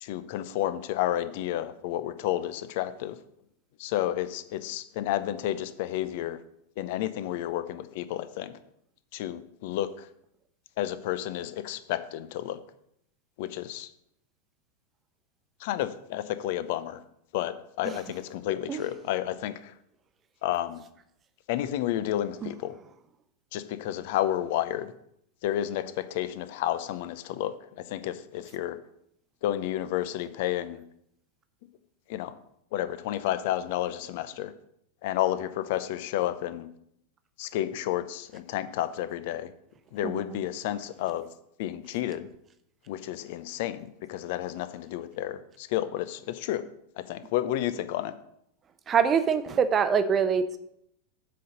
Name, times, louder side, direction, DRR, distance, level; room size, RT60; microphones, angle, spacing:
voice 1, 0.0-3.2 3.8-6.4 6.8-8.5 9.1-10.1 10.8-12.6 13.4-13.9 15.6-17.0 17.3-19.7 20.4-20.8 21.5-22.7 23.5-24.9 25.4-28.8 29.4-30.8 32.1-32.3 32.7-34.5 35.0-36.7 37.4-39.5 39.9-41.3 41.6-42.3 42.9-46.6 47.0-48.1, left 13 dB, 50° left, 13 dB, 0.7 m, -31 dB
voice 2, 48.9-50.6, right 7 dB, 25° right, 11 dB, 0.8 m, -24 dB
7.7 x 5.5 x 6.6 m, 0.74 s
figure-of-eight pair, 90°, 0 cm